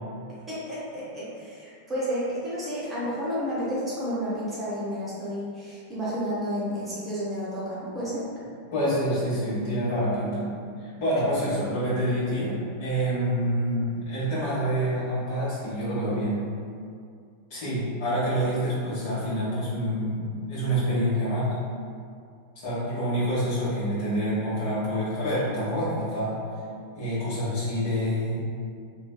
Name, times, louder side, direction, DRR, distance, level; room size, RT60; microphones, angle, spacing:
voice 1, 0.5-8.2, equal, 15° right, -10 dB, 0.8 m, -31 dB
voice 2, 8.7-10.4 10.8-16.4 17.5-21.6 22.6-26.4 26.9-28.4, equal, 50° left, -10 dB, 1.1 m, -27 dB
2.6 x 2.3 x 2.2 m, 2.3 s
figure-of-eight pair, 90°, 0 cm